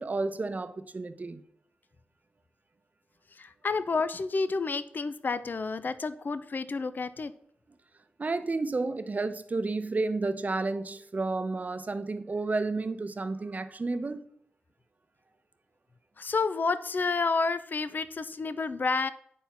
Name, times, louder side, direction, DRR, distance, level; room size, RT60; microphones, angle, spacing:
voice 1, 0.0-1.4 8.2-14.2, right 3 dB, 45° right, 0.8 m, -31 dB
voice 2, 3.4-7.3 16.2-19.1, left 4 dB, 55° left, 0.6 m, -30 dB
9.2 x 4.3 x 6.0 m
wide cardioid pair, 85°, 4 cm